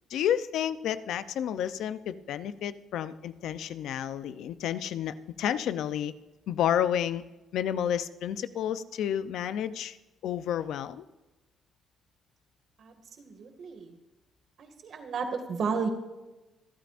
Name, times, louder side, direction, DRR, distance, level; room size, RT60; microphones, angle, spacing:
voice 1, 0.1-6.1 6.5-7.2 7.5-10.0 10.2-11.0, left 10 dB, 80° left, 13 dB, 0.6 m, -30 dB
voice 2, 12.8-13.9 14.6-15.9, right 5 dB, 60° right, 5 dB, 2.1 m, -33 dB
26.0 x 9.1 x 2.6 m, 1.1 s
cardioid pair, 90°, 0 cm